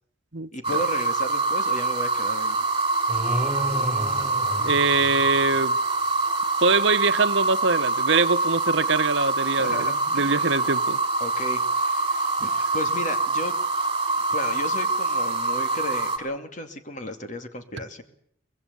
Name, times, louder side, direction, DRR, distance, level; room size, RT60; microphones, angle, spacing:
voice 1, 0.5-2.7 9.6-10.5 11.2-13.6 14.3-18.0, left 1 dB, 40° left, 7 dB, 2.6 m, -34 dB
sound 1, 0.6-16.2, right 3 dB, 25° right, 4.4 m, -25 dB
sound 2, 3.1-5.6, equal, 10° right, 6.2 m, -31 dB
voice 2, 4.6-5.8 6.6-11.0, right 4 dB, 65° right, 12 dB, 1.2 m, -23 dB
24.5 x 22.0 x 7.1 m, 0.66 s
head